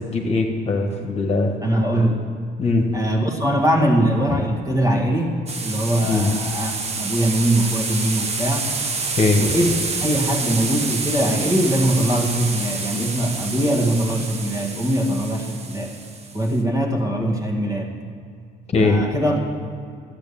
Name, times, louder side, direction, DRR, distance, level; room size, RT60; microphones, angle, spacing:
voice 1, 0.1-1.5 2.6-2.9 4.3-4.4 6.0-6.3 9.2-9.4 18.7-19.0, left 3 dB, 40° left, 3 dB, 1.5 m, -20 dB
voice 2, 1.6-2.2 2.9-8.7 9.4-16.0 16.3-18.0 18.8-19.5, right 1 dB, 20° right, 1 dB, 1.9 m, -22 dB
sound 1, 5.5-16.5, right 4 dB, 40° right, 1.1 m, -28 dB
12.0 x 8.4 x 7.0 m, 2.3 s
cardioid pair, 110°, 17 cm